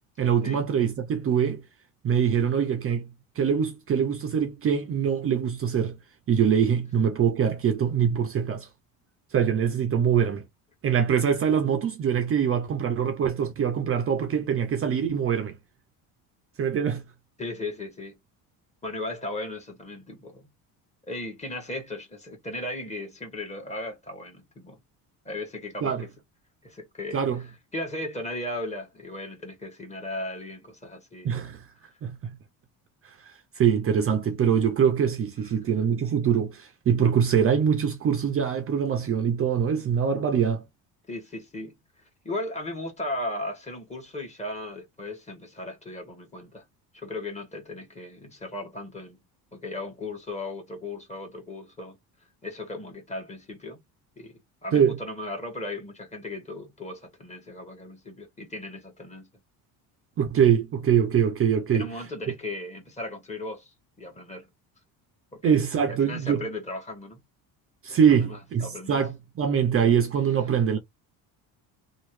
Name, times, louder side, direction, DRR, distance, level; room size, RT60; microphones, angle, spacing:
voice 1, 0.2-1.6 2.0-3.1 3.4-6.0 6.3-8.7 9.3-10.4 10.8-15.5 16.6-17.0 25.8-26.0 27.1-27.4 31.2-31.6 32.0-32.2 33.0-40.6 54.7-55.0 60.2-61.9 65.4-66.4 67.8-70.8, right 7 dB, 35° right, 0.6 m, -23 dB
voice 2, 17.4-18.2 18.8-20.4 21.1-24.8 25.2-26.0 26.6-27.2 27.7-31.3 41.1-41.7 42.2-46.6 46.9-49.2 49.5-52.0 52.4-53.8 54.2-59.3 61.7-64.5 65.3-67.2 68.1-69.0, left 1 dB, 15° left, 1.5 m, -36 dB
3.0 x 2.4 x 3.1 m
cardioid pair, 120°, 39 cm